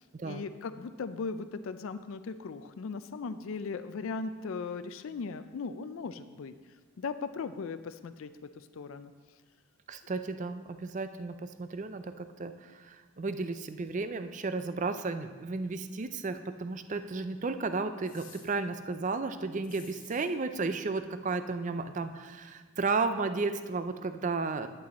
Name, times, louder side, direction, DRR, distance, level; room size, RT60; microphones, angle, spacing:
voice 1, 0.0-6.5 7.0-8.3 8.6-9.1, left 4 dB, 70° left, 11 dB, 0.4 m, -38 dB
voice 2, 9.9-24.7, right 3 dB, 35° right, 10 dB, 0.4 m, -33 dB
sound 1, 18.0-18.5 19.6-20.3, left 7 dB, 40° left, 1.8 m, -53 dB
11.0 x 7.7 x 4.1 m, 1.4 s
head